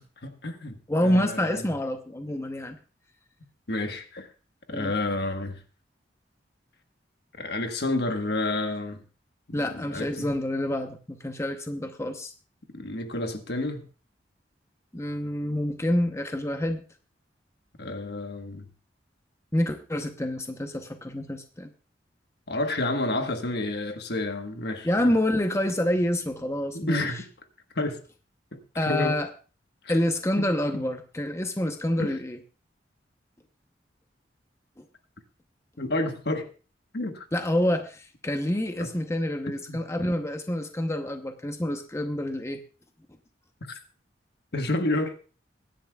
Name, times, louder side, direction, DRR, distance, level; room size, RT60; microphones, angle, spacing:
voice 1, 0.2-1.6 3.7-4.3 4.7-5.6 7.4-9.0 9.7-10.3 12.7-13.9 17.8-18.6 22.5-24.9 26.7-27.3 27.7-28.0 28.5-29.2 29.8-30.0 30.7-30.9 32.0-32.2 35.8-36.5 36.9-37.3 38.8-38.9 39.7-39.8 44.5-45.2, left 2 dB, 65° left, 6 dB, 1.4 m, -30 dB
voice 2, 0.9-2.8 4.7-4.9 9.5-12.3 14.9-16.8 19.5-21.7 24.8-27.1 28.7-29.3 29.9-32.4 34.8-34.9 37.3-42.6, left 1 dB, 15° left, 6 dB, 0.8 m, -27 dB
23.0 x 10.5 x 2.3 m, 0.35 s
head